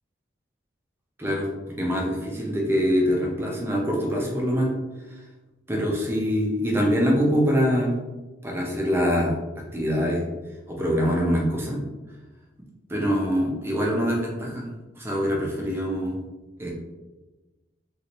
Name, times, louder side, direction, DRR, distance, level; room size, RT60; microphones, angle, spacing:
voice 1, 1.8-4.7 5.1-5.2 5.7-7.9 8.4-9.4 9.7-10.2 10.7-11.8 12.9-14.6 15.0-16.2 16.6-16.7, equal, 15° right, -2 dB, 0.6 m, -24 dB
3.0 x 2.7 x 2.9 m, 1.1 s
head